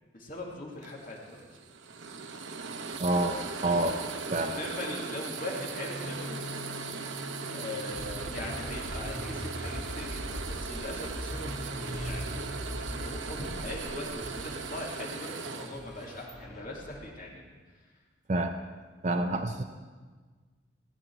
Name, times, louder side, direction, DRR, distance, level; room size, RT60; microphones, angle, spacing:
voice 1, 0.1-1.5 3.6-4.0 4.4-6.4 7.5-12.4 12.9-17.4, left 1 dB, 45° left, -2 dB, 2.3 m, -40 dB
sound 1, 0.8-16.3, right 4 dB, 85° right, 0.8 m, -39 dB
voice 2, 2.9-4.0 4.3-4.6 18.3-18.5 19.0-19.6, right 2 dB, 40° right, 4 dB, 0.6 m, -28 dB
sound 2, 5.4-17.2, equal, ahead, 1.5 m, -41 dB
16.5 x 9.4 x 4.5 m, 1.4 s
head